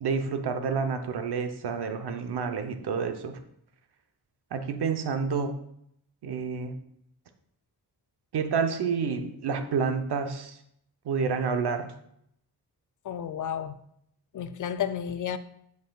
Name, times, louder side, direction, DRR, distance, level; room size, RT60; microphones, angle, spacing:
voice 1, 0.0-3.4 4.5-5.5 6.2-6.8 8.3-10.6 11.0-11.9, right 5 dB, 80° right, 0.8 m, -29 dB
voice 2, 13.0-13.8 14.3-15.4, left 9 dB, 55° left, 0.4 m, -31 dB
7.9 x 7.8 x 2.3 m
wide cardioid pair, 140°, 39 cm